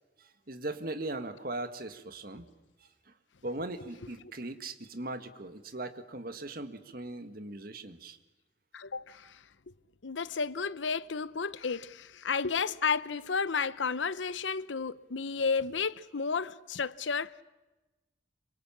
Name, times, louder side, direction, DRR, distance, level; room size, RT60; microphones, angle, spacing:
voice 1, 0.2-2.5 2.8-3.1 3.4-8.2, right 2 dB, 50° right, 1.8 m, -39 dB
voice 2, 8.7-9.4 10.0-17.4, left 5 dB, 90° left, 0.8 m, -32 dB
27.0 x 25.0 x 7.3 m
head